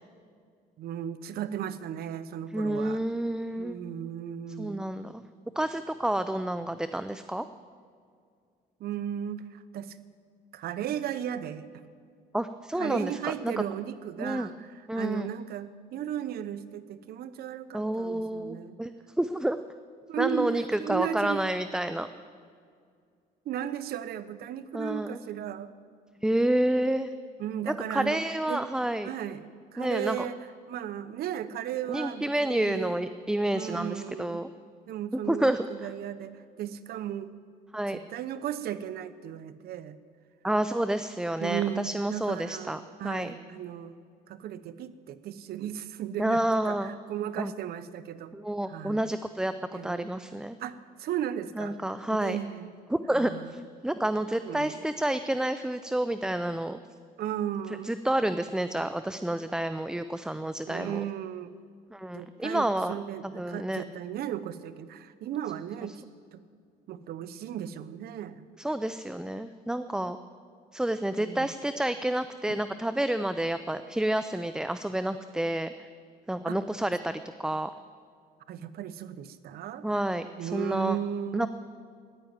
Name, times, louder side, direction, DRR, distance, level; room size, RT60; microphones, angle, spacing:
voice 1, 0.8-3.0 3.6-4.8 8.8-10.0 10.5-11.7 12.8-18.8 20.1-21.5 23.4-25.7 27.4-28.2 28.5-28.7 29.0-30.4 30.7-33.0 33.5-34.4 34.9-37.4 37.9-40.0 41.4-44.0 44.3-48.3 48.6-49.1 49.7-50.1 50.6-51.8 52.2-52.8 53.1-53.5 54.4-54.8 57.2-57.9 60.7-61.5 62.1-66.0 66.3-66.4 66.9-68.4 71.2-71.5 72.5-72.6 76.5-76.6 78.5-79.9 80.4-81.5, right 10 dB, 65° right, 14 dB, 0.9 m, -35 dB
voice 2, 2.5-3.8 4.6-5.2 5.6-7.5 12.3-13.5 14.2-14.5 14.9-15.3 17.7-18.9 19.2-19.6 20.2-22.1 24.7-25.2 26.2-27.1 27.9-29.1 29.8-30.3 31.9-34.5 35.3-35.9 37.7-38.0 40.4-43.3 46.2-46.9 47.4-47.5 48.3-50.6 51.6-52.4 52.9-56.8 57.8-61.0 61.9-62.9 63.2-63.8 68.6-70.2 70.7-75.7 76.3-77.7 79.8-81.0 81.3-81.5, right 1 dB, 5° right, 11 dB, 0.5 m, -29 dB
14.5 x 10.5 x 8.9 m, 2.2 s
cardioid pair, 110°, 17 cm